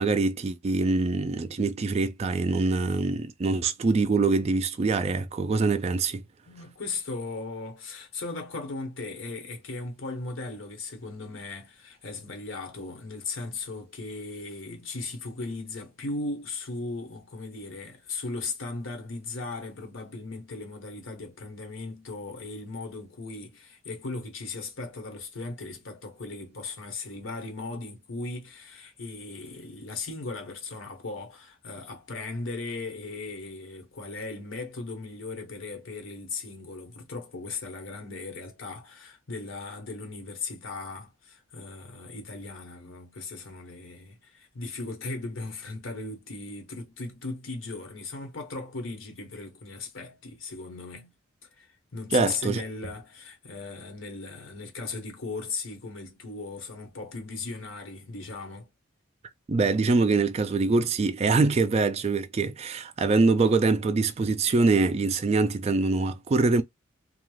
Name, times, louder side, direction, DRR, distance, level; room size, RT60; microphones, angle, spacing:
voice 1, 0.0-6.2 52.1-52.6 59.5-66.6, right 3 dB, 30° right, 0.3 m, -24 dB
voice 2, 6.5-51.1 51.6-58.7, left 3 dB, 70° left, 1.1 m, -37 dB
2.3 x 2.3 x 3.1 m
head